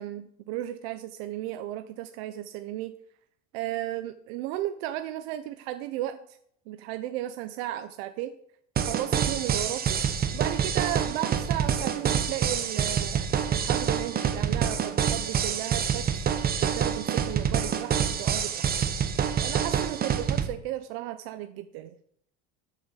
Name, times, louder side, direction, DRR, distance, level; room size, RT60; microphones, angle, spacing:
voice 1, 0.0-2.9 3.5-6.4 6.7-8.3 8.8-10.0 10.3-16.1 16.6-18.7 19.4-21.9, right 13 dB, 85° right, 9 dB, 0.8 m, -35 dB
sound 1, 8.8-20.5, right 8 dB, 30° right, 1.0 m, -27 dB
7.7 x 6.5 x 6.9 m, 0.68 s
cardioid pair, 130°, 31 cm